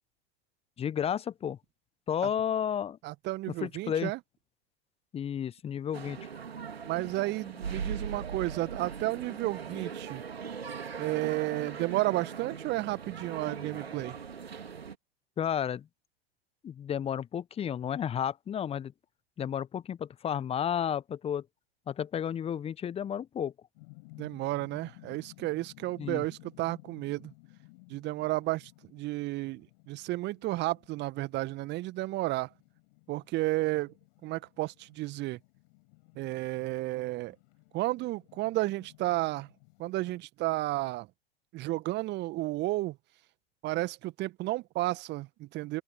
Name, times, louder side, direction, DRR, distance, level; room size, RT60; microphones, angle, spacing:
voice 1, 0.8-1.6 2.1-3.0 3.6-4.1 5.1-6.3 15.4-15.9 16.6-18.9 19.4-21.4 21.9-23.5 26.0-26.3, left 9 dB, 20° left, 1.1 m, -32 dB
voice 2, 3.0-4.2 6.8-10.2 11.0-14.2 24.2-27.3 27.9-32.5 33.1-33.9 34.2-35.4 36.2-37.4 37.7-39.5 39.8-41.1 41.5-43.0 43.6-45.8, right 18 dB, 35° right, 1.9 m, -32 dB
sound 1, 5.9-14.9, right 6 dB, 75° right, 3.9 m, -40 dB
sound 2, 23.7-40.2, left 30 dB, 45° left, 6.8 m, -57 dB
open air
figure-of-eight pair, 95°, 31 cm